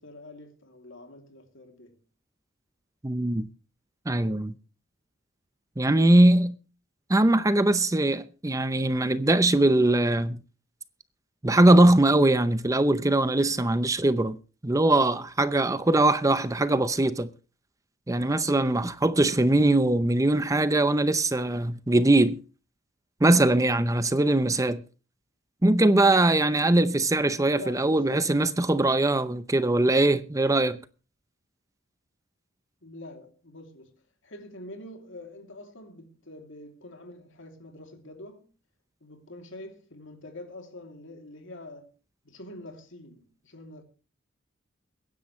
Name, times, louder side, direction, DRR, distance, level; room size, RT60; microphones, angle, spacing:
voice 1, 0.0-2.0 27.5-28.3 32.8-38.5 39.0-41.9 42.2-43.8, left 1 dB, 65° left, 2.8 m, -45 dB
voice 2, 3.0-3.5 4.1-4.5 5.8-6.5 7.1-10.4 11.4-14.4 14.6-17.3 18.1-22.4 23.2-24.8 25.6-30.8, right 2 dB, 15° right, 0.6 m, -21 dB
23.0 x 10.5 x 3.2 m
head